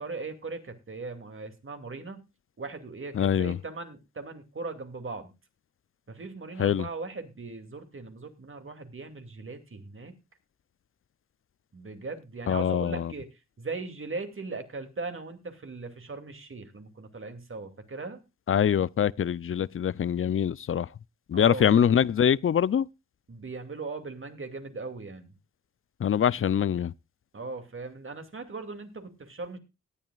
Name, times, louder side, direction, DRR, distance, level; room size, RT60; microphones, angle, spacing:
voice 1, 0.0-2.2 2.6-5.3 6.1-10.2 11.7-18.2 21.3-21.8 23.3-25.3 27.3-29.6, right 3 dB, 45° right, 2.6 m, -39 dB
voice 2, 3.2-3.6 6.6-6.9 12.5-13.1 18.5-20.9 21.3-22.9 26.0-26.9, left 8 dB, 45° left, 0.5 m, -24 dB
18.0 x 10.5 x 2.4 m
cardioid pair, 70°, 30 cm